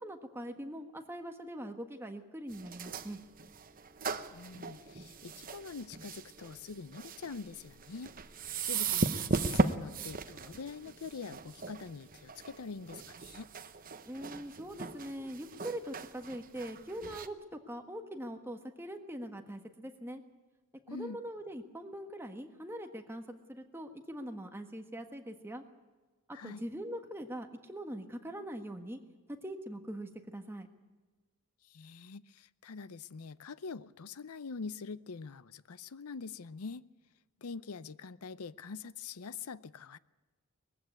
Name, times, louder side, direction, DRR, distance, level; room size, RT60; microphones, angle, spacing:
voice 1, 0.0-3.2 14.1-20.2 20.9-25.6 26.3-29.0 29.4-30.7, right 1 dB, 10° right, 5 dB, 1.4 m, -42 dB
sound 1, 2.5-17.3, right 3 dB, 40° right, 1.0 m, -38 dB
voice 2, 4.3-8.1 8.6-13.5 20.9-21.2 26.3-26.6 31.7-36.9 37.4-40.0, left 5 dB, 85° left, 17 dB, 0.6 m, -44 dB
20.5 x 15.5 x 9.5 m, 1.3 s
head